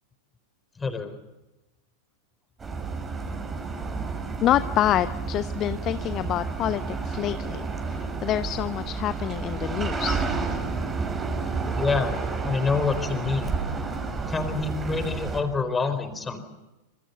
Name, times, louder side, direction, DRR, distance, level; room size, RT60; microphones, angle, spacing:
voice 1, 0.8-1.2 11.8-12.2 12.4-13.5 14.3-16.4, left 4 dB, 15° left, 10 dB, 4.4 m, -26 dB
sound 1, 2.6-15.4, right 4 dB, 20° right, 6.0 m, -30 dB
voice 2, 4.4-7.6 7.9-10.2, left 12 dB, 35° left, 13 dB, 0.9 m, -27 dB
27.5 x 27.0 x 7.0 m, 1.0 s
figure-of-eight pair, 90°, 0 cm